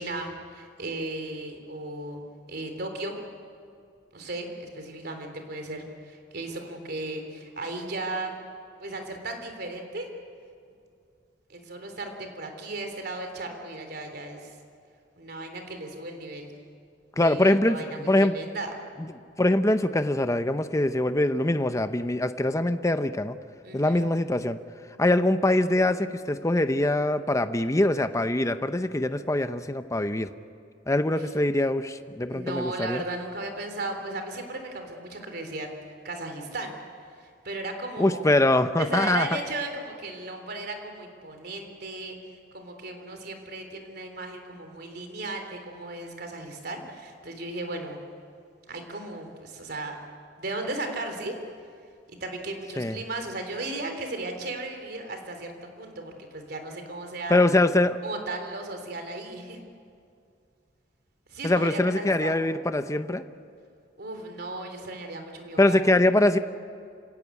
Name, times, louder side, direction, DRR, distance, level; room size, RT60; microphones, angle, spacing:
voice 1, 0.0-2.2 2.5-3.2 4.1-8.3 8.8-10.1 11.5-14.6 15.2-16.5 17.1-18.7 23.6-24.0 31.0-31.3 32.3-35.7 36.0-36.7 37.2-38.2 38.8-42.2 42.5-48.0 48.7-50.0 50.4-51.3 52.1-57.4 58.0-59.6 61.3-62.4 64.0-65.8, right 2 dB, 60° right, 5 dB, 3.5 m, -36 dB
voice 2, 17.2-18.3 19.0-19.1 19.4-23.4 23.7-24.6 25.0-30.3 30.9-33.0 38.0-39.3 52.8-53.0 57.3-58.0 61.4-63.2 65.6-66.4, left 1 dB, 15° left, 10 dB, 0.7 m, -23 dB
28.5 x 16.5 x 8.5 m, 2.4 s
head